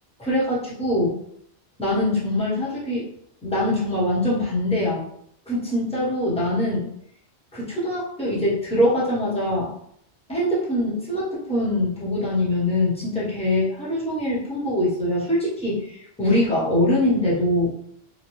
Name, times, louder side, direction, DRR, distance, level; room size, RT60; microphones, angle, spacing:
voice 1, 0.2-1.2 1.8-3.0 3.4-5.0 5.5-6.9 7.5-9.7 10.3-17.7, left 1 dB, 5° left, -8 dB, 1.0 m, -23 dB
2.8 x 2.2 x 3.0 m, 0.70 s
omnidirectional pair, 1.1 m